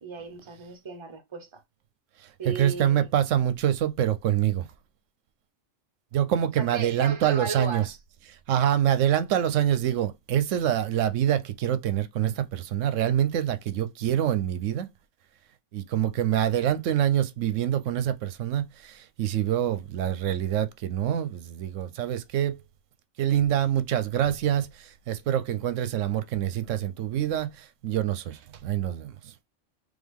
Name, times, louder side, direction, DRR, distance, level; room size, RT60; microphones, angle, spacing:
voice 1, 0.0-1.6 2.4-3.1 6.6-8.0, right 4 dB, 25° right, 0.9 m, -36 dB
voice 2, 2.5-4.7 6.1-7.8 8.3-14.9 15.7-22.6 23.2-29.3, right 10 dB, 80° right, 0.9 m, -26 dB
3.6 x 3.4 x 3.5 m
omnidirectional pair, 1.3 m